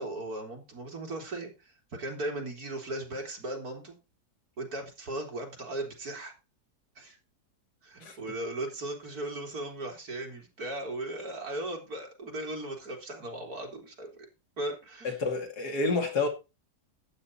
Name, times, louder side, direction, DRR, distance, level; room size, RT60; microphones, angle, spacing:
voice 1, 0.0-4.0 4.6-6.3 7.0-7.2 7.8-14.1 14.6-15.1, right 1 dB, 65° right, 3.8 m, -37 dB
voice 2, 15.0-16.3, left 3 dB, 80° left, 2.8 m, -29 dB
12.0 x 8.9 x 4.2 m
omnidirectional pair, 1.7 m